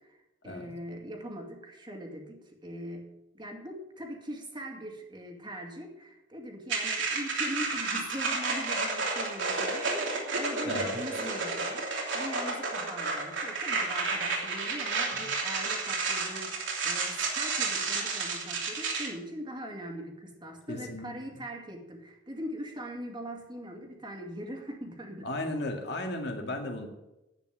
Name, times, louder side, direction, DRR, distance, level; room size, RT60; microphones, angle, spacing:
voice 1, 0.0-25.3, equal, 25° right, 2 dB, 2.2 m, -41 dB
sound 1, 6.7-19.1, right 4 dB, 85° right, 3.0 m, -31 dB
voice 2, 10.6-11.0 15.1-15.3 20.7-21.1 25.2-26.9, left 1 dB, 65° left, 3 dB, 2.0 m, -35 dB
10.5 x 9.1 x 7.5 m, 0.95 s
head